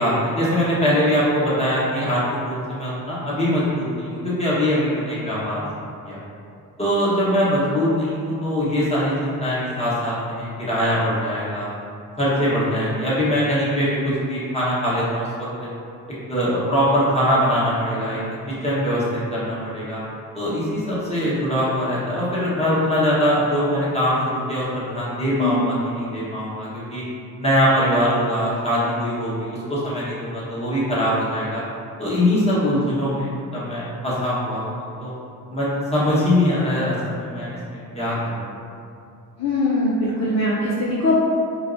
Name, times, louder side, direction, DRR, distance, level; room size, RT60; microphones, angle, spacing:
voice 1, 0.0-5.6 6.0-6.2 6.8-11.7 12.2-14.0 14.3-15.5 16.3-18.2 18.6-19.0 19.3-20.0 20.3-27.0 27.4-31.6 32.0-34.7 35.0-35.1 35.5-38.5, equal, 15° left, -9 dB, 1.3 m, -22 dB
voice 2, 39.4-41.2, left 2 dB, 45° left, -7 dB, 0.6 m, -21 dB
4.6 x 2.2 x 2.6 m, 2.5 s
cardioid pair, 80°, 36 cm